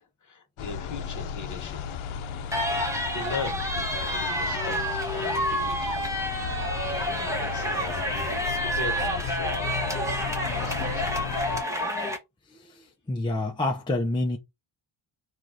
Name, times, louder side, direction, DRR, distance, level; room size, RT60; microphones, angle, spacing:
voice 1, 0.0-1.8 3.1-6.0 7.0-8.5 8.8-9.7 10.6-11.4, left 4 dB, 35° left, 1.4 m, -39 dB
sound 1, 0.6-11.6, left 8 dB, 75° left, 0.7 m, -35 dB
sound 2, 2.5-12.2, equal, 5° right, 1.0 m, -29 dB
voice 2, 12.5-14.4, left 2 dB, 10° left, 0.6 m, -28 dB
4.6 x 2.5 x 4.0 m
wide cardioid pair, 155°, 49 cm